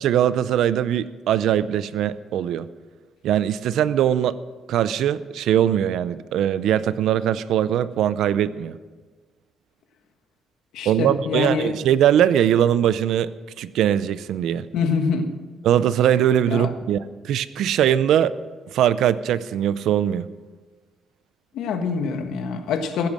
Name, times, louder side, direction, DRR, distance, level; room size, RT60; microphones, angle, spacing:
voice 1, 0.0-2.7 3.2-4.4 4.7-8.8 10.9-13.3 13.6-14.7 15.6-18.3 18.7-20.3, right 10 dB, 75° right, 15 dB, 0.5 m, -21 dB
voice 2, 10.7-11.7 14.7-15.3 16.5-16.7 21.5-23.1, left 5 dB, 85° left, 7 dB, 1.4 m, -25 dB
16.0 x 10.5 x 6.3 m, 1.4 s
cardioid pair, 160°, 0 cm